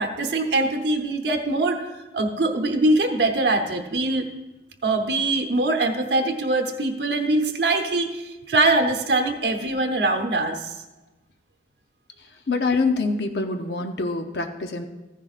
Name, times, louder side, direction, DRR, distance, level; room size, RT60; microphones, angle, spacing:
voice 1, 0.0-1.9 2.1-4.3 4.8-10.8, right 2 dB, 80° right, 4 dB, 0.9 m, -23 dB
voice 2, 12.5-14.9, left 3 dB, 70° left, 5 dB, 0.7 m, -25 dB
14.5 x 10.0 x 2.5 m, 1.1 s
head